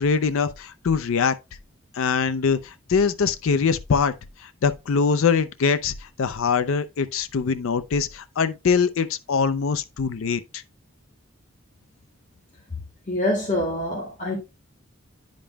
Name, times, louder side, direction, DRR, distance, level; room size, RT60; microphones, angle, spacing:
voice 1, 0.0-1.4 1.9-4.1 4.4-5.9 6.2-10.6, left 5 dB, 70° left, 0.4 m, -23 dB
voice 2, 13.1-14.4, left 1 dB, 35° left, 1.8 m, -25 dB
9.9 x 5.2 x 2.2 m
head